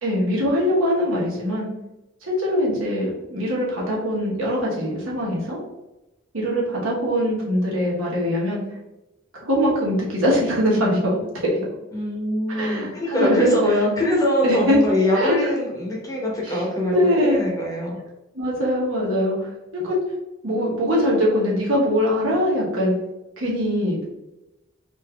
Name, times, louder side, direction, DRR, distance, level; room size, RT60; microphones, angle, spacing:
voice 1, 0.0-1.7 2.2-5.6 6.3-8.6 9.4-11.7 12.5-13.9 14.4-14.8 15.1-15.3 16.5-16.6 16.9-17.4 18.3-20.0 20.4-22.9 23.4-24.0, equal, 85° right, -4 dB, 1.1 m, -22 dB
voice 2, 11.9-18.0, left 1 dB, 15° left, -2 dB, 0.8 m, -23 dB
4.0 x 2.6 x 2.3 m, 1.0 s
head